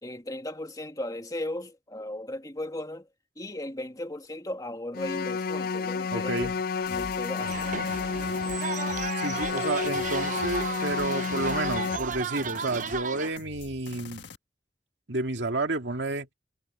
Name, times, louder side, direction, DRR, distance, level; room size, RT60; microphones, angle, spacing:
voice 1, 0.0-3.1 3.4-6.4 6.9-7.7, left 1 dB, 20° left, 2.2 m, -36 dB
sound 1, 4.9-12.0, left 5 dB, 55° left, 0.4 m, -30 dB
voice 2, 6.1-6.5 9.2-14.2 15.1-16.3, right 2 dB, 90° right, 2.2 m, -30 dB
sound 2, 6.4-14.4, left 3 dB, 85° left, 1.5 m, -45 dB
sound 3, 7.4-13.3, right 6 dB, 45° right, 0.6 m, -35 dB
head